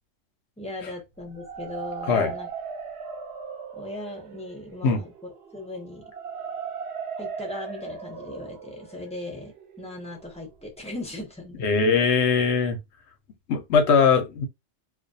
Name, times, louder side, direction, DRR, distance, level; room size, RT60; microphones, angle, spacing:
voice 1, 0.6-2.5 3.7-5.1 5.5-6.0 7.2-12.1, left 2 dB, 10° left, 0.4 m, -38 dB
sound 1, 1.2-11.0, right 6 dB, 60° right, 0.8 m, -38 dB
voice 2, 11.6-12.8 13.5-14.5, left 5 dB, 65° left, 0.7 m, -20 dB
2.3 x 2.2 x 2.6 m
omnidirectional pair, 1.4 m